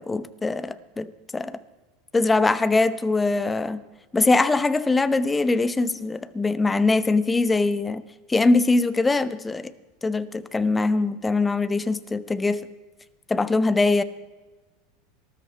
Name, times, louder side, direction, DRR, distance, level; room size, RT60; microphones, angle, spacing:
voice 1, 0.0-1.6 2.1-3.8 4.1-8.0 8.3-9.7 10.0-12.6 13.3-14.0, left 3 dB, 15° left, 14 dB, 0.8 m, -22 dB
19.0 x 13.5 x 4.6 m, 1.2 s
figure-of-eight pair, 80°, 0 cm